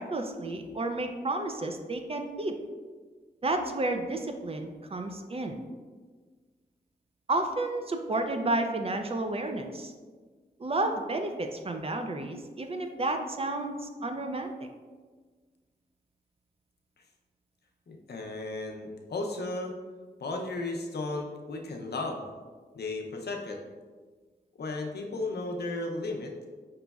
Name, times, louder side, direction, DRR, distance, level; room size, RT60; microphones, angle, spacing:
voice 1, 0.0-2.6 3.4-5.6 7.3-9.9 10.6-13.8 14.0-14.5, right 2 dB, 35° right, 5 dB, 0.4 m, -31 dB
voice 2, 17.9-19.7 20.2-22.2 22.7-23.6 24.5-26.5, left 2 dB, 70° left, 2 dB, 0.6 m, -35 dB
5.1 x 3.0 x 2.3 m, 1.4 s
wide cardioid pair, 70°, 17 cm